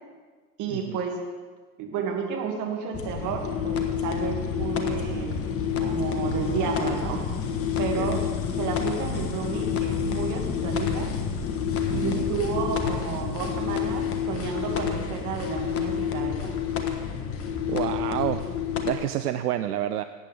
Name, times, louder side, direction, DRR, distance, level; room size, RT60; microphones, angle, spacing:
voice 1, 0.6-1.2 1.8-5.4 5.8-7.2 7.8-8.2 8.6-11.1 11.9-16.5, right 6 dB, 40° right, 1 dB, 2.5 m, -31 dB
sound 1, 2.9-18.9, left 8 dB, 30° left, 1.3 m, -28 dB
voice 2, 11.9-12.2 17.7-18.4 18.8-20.0, right 12 dB, 75° right, 10 dB, 0.6 m, -28 dB
17.5 x 9.2 x 3.6 m, 1.4 s
hypercardioid pair, 90°, 47 cm